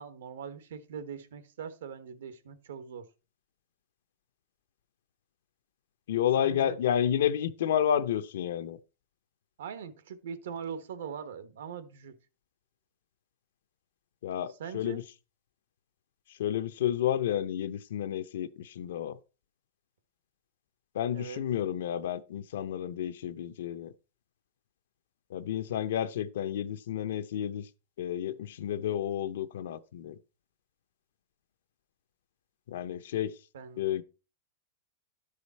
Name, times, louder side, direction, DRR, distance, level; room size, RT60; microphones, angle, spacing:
voice 1, 0.0-3.1 6.4-6.8 9.6-12.1 14.6-15.0 21.1-21.4 33.5-33.8, right 7 dB, 80° right, 1.2 m, -41 dB
voice 2, 6.1-8.8 14.2-15.0 16.3-19.2 20.9-23.9 25.3-27.7 28.0-30.2 32.7-33.4 33.8-34.0, left 10 dB, 70° left, 0.6 m, -31 dB
12.0 x 5.0 x 4.1 m
supercardioid pair, 175°, 0 cm